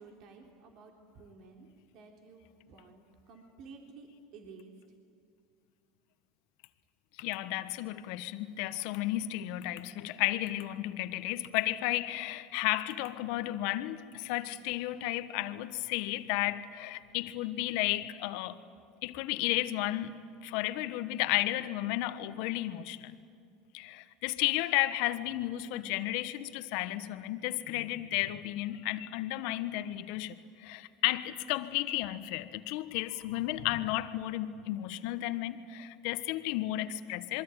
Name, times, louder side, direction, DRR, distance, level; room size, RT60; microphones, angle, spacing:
voice 1, 0.0-4.8, right 4 dB, 60° right, 3.6 m, -53 dB
voice 2, 7.2-18.5 19.0-23.1 23.7-30.3 30.6-37.4, left 15 dB, 70° left, 1.4 m, -33 dB
27.5 x 23.0 x 9.1 m
hypercardioid pair, 90°, 0 cm